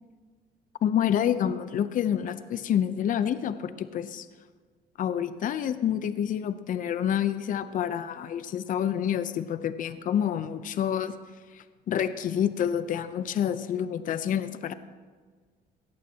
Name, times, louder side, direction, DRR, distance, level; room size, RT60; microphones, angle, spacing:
voice 1, 0.8-4.3 5.0-11.1 11.5-14.7, left 9 dB, 50° left, 12 dB, 0.7 m, -28 dB
18.5 x 14.0 x 2.9 m, 1.5 s
cardioid pair, 110°, 17 cm